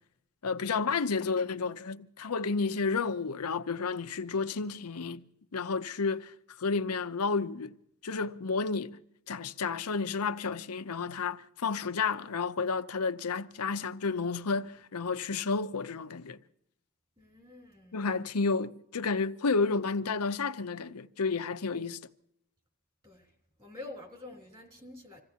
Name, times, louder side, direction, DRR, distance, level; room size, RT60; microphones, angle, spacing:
voice 1, 0.4-5.3 5.5-6.3 6.6-7.7 8.0-9.0 9.3-16.4 17.9-22.0, left 4 dB, 85° left, 0.7 m, -31 dB
voice 2, 17.2-18.0 23.0-23.3 23.6-25.2, left 2 dB, 25° right, 3.3 m, -47 dB
26.5 x 15.5 x 2.9 m
head